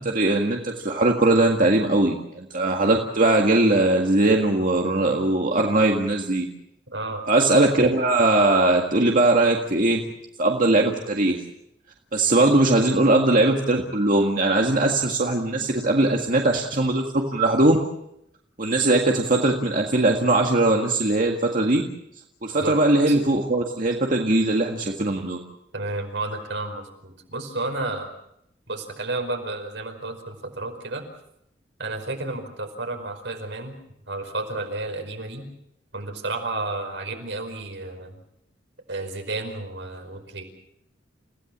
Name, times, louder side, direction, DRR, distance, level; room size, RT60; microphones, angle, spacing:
voice 1, 0.0-6.5 7.3-10.0 10.4-11.4 12.1-17.8 18.6-21.8 22.4-25.4, right 2 dB, 50° right, 1 dB, 1.9 m, -20 dB
voice 2, 6.9-7.2 22.6-22.8 23.1-23.2 25.7-28.1 28.7-31.0 31.8-33.8 34.1-35.5 35.9-38.1 38.9-40.4, right 2 dB, 80° right, 4 dB, 5.0 m, -31 dB
29.5 x 17.0 x 7.4 m, 0.79 s
head